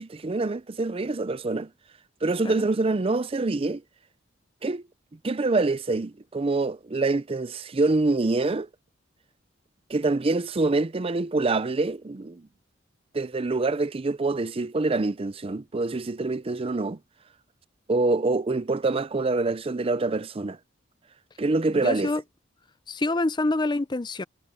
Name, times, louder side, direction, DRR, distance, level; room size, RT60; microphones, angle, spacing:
voice 1, 0.0-1.7 2.2-3.8 4.6-4.8 5.2-8.7 9.9-12.4 13.1-17.0 17.9-20.6 21.4-22.1, right 3 dB, 30° right, 0.5 m, -25 dB
voice 2, 21.7-22.2 22.9-24.2, left 2 dB, 25° left, 0.5 m, -26 dB
head